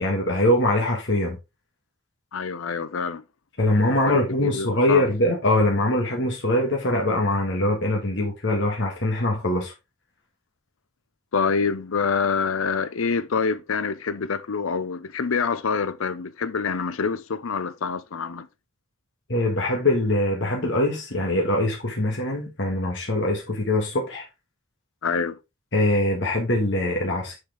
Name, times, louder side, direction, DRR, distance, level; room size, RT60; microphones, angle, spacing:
voice 1, 0.0-1.4 3.6-9.7 19.3-24.2 25.7-27.4, left 1 dB, 60° left, 1.6 m, -23 dB
voice 2, 2.3-3.2 4.1-5.0 11.3-18.5 25.0-25.4, left 5 dB, 80° left, 0.6 m, -26 dB
6.6 x 5.8 x 3.5 m
head